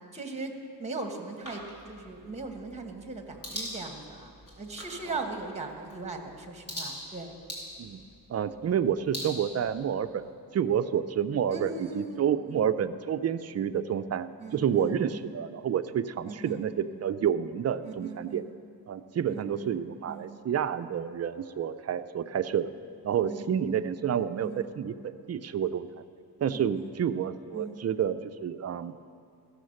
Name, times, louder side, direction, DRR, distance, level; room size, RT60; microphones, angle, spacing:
voice 1, 0.1-0.5 0.8-7.3 11.5-12.6 14.4-15.2 16.2-16.7 17.8-18.5 19.3-19.8 20.1-20.4 23.2-23.5 24.4-24.7 26.5-26.9 27.5-27.8, right 3 dB, 15° right, 4 dB, 1.2 m, -39 dB
sound 1, 1.4-10.2, equal, 35° left, 3.3 m, -43 dB
voice 2, 8.3-10.2 10.5-18.4 18.9-22.7 23.0-25.9 26.4-29.0, right 8 dB, 40° right, 11 dB, 0.4 m, -29 dB
15.0 x 6.5 x 6.4 m, 2.4 s
cardioid pair, 115°, 41 cm